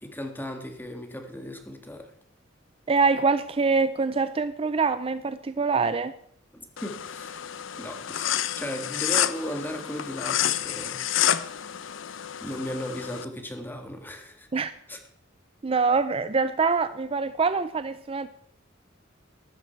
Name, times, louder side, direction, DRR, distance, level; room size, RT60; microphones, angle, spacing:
voice 1, 0.0-2.1 6.5-7.4 7.8-11.4 12.4-14.6 14.9-15.0, equal, 10° left, 5 dB, 1.8 m, -36 dB
voice 2, 2.9-6.1 14.5-14.7 15.6-18.3, right 4 dB, 30° right, 13 dB, 0.4 m, -24 dB
sound 1, 6.8-13.2, left 11 dB, 75° left, 0.7 m, -29 dB
15.0 x 12.5 x 4.5 m, 0.66 s
head